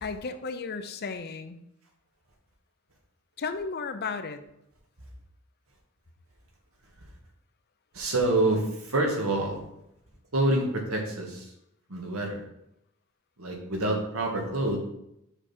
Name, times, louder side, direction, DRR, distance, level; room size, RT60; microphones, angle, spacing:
voice 1, 0.0-1.6 3.4-4.4, left 4 dB, 50° left, 9 dB, 0.7 m, -34 dB
voice 2, 7.9-9.7 10.3-11.5 11.9-12.4 13.4-14.8, right 2 dB, 80° right, 0 dB, 1.9 m, -27 dB
7.0 x 5.9 x 4.4 m, 0.80 s
head